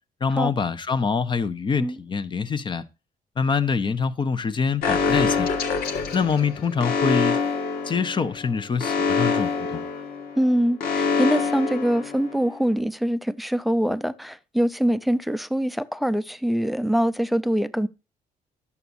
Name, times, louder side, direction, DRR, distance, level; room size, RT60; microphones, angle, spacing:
voice 1, 0.2-2.8 3.4-5.5 6.1-7.4 7.8-9.8, left 5 dB, 30° left, 0.7 m, -25 dB
Alarm, 4.8-12.6, left 5 dB, 85° left, 1.3 m, -25 dB
voice 2, 10.4-17.9, equal, ahead, 0.4 m, -24 dB
11.0 x 7.0 x 2.6 m
cardioid pair, 120°, 15 cm